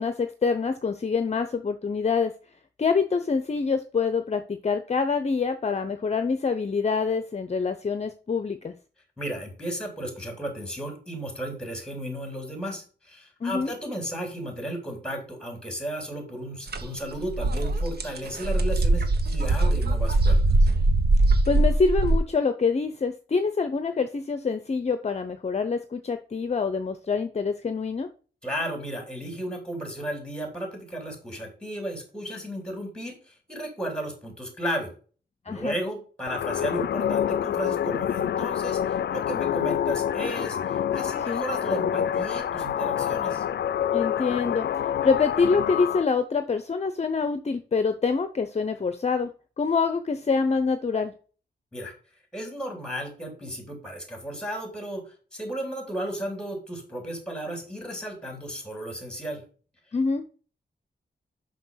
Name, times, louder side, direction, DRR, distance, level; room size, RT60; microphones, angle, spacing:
voice 1, 0.0-2.3 2.8-8.7 13.4-13.7 21.5-28.1 35.5-35.8 41.3-41.4 43.9-44.7 45.0-49.3 49.6-51.1 59.9-60.2, left 5 dB, 40° left, 9 dB, 0.7 m, -25 dB
voice 2, 9.2-20.7 28.4-34.9 35.5-43.5 51.7-51.9 52.3-55.0 55.3-59.4, right 1 dB, 5° left, 3 dB, 3.7 m, -34 dB
sound 1, 16.7-16.8 17.1-22.2, right 2 dB, 65° right, 1.2 m, -21 dB
sound 2, 36.3-46.0, left 9 dB, 80° left, 0.4 m, -27 dB
6.1 x 5.9 x 5.7 m, 0.38 s
wide cardioid pair, 120°, 18 cm